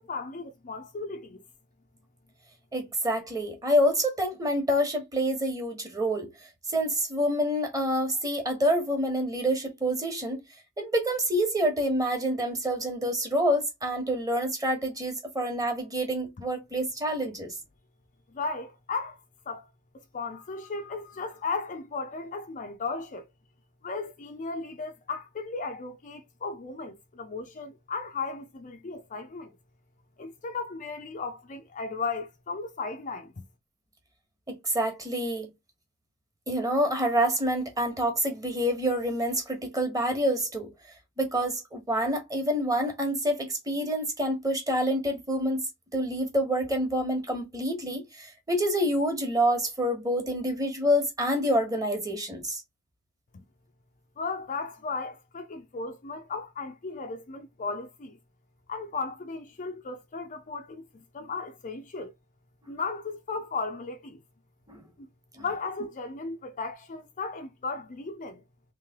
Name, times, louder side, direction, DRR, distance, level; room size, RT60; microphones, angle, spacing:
voice 1, 0.0-1.4 18.3-19.2 19.5-19.7 20.1-23.3 23.8-29.5 30.2-33.4 54.2-58.2 58.7-62.1 62.7-64.2 65.0-65.1 65.4-68.4, left 4 dB, 35° left, 0.5 m, -35 dB
voice 2, 2.7-6.3 6.7-10.4 10.8-17.5 34.5-35.5 36.5-40.7 41.2-45.6 45.9-52.6 64.7-64.8, equal, 15° right, 1.2 m, -27 dB
3.3 x 3.2 x 3.5 m
head